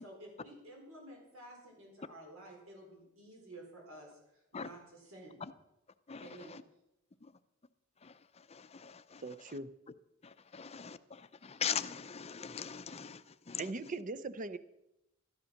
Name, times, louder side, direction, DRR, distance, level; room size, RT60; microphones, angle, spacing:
voice 1, 0.0-4.8 5.1-5.4 6.2-6.6, right 1 dB, 80° right, 4.6 m, -52 dB
voice 2, 6.1-6.6 7.2-7.4 8.0-9.6 10.2-13.7, left 7 dB, 30° left, 0.6 m, -42 dB
voice 3, 9.2-9.7 13.6-14.6, right 3 dB, 40° right, 0.6 m, -40 dB
13.0 x 9.9 x 6.5 m
head